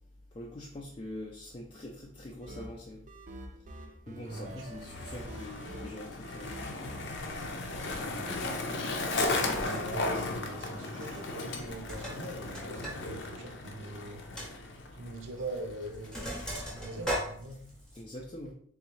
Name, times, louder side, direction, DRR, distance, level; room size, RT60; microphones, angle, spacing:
voice 1, 0.3-3.0 4.1-6.8 18.0-18.5, left 1 dB, 25° left, 0.3 m, -44 dB
sound 1, 2.4-7.5, right 1 dB, 40° right, 0.4 m, -46 dB
Skateboard, 4.3-17.0, left 2 dB, 70° left, 0.6 m, -36 dB
voice 2, 4.3-4.8 7.7-14.3 14.7-17.7, right 1 dB, 85° right, 0.6 m, -43 dB
Sink (filling or washing), 9.0-9.1 9.4-9.9 10.9-11.3 11.6-13.0 13.3-13.4 13.8-13.9 14.4-14.5 15.4-15.6 15.8-18.0, equal, 5° left, 0.8 m, -38 dB
3.6 x 3.1 x 3.0 m
head